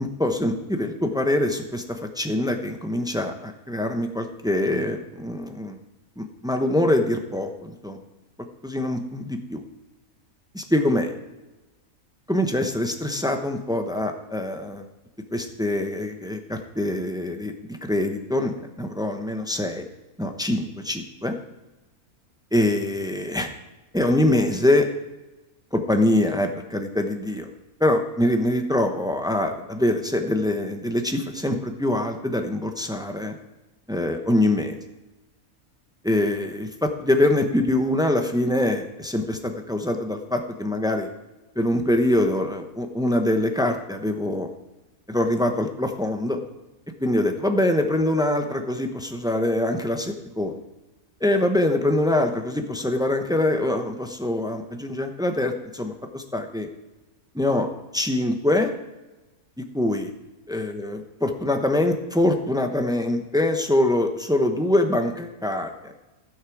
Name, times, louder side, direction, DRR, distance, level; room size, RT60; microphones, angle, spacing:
voice 1, 0.0-1.8 2.2-5.8 6.2-8.0 8.6-9.6 10.5-11.1 12.3-14.9 15.3-19.8 20.2-21.3 22.5-23.5 23.9-24.9 25.7-27.5 27.8-33.3 33.9-34.8 36.0-41.1 41.6-44.5 45.1-46.4 47.0-50.5 51.2-56.7 57.3-57.7 57.9-58.7 59.6-60.1 60.5-65.9, left 1 dB, 5° right, 5 dB, 0.5 m, -24 dB
15.0 x 6.5 x 4.7 m, 1.1 s
omnidirectional pair, 1.5 m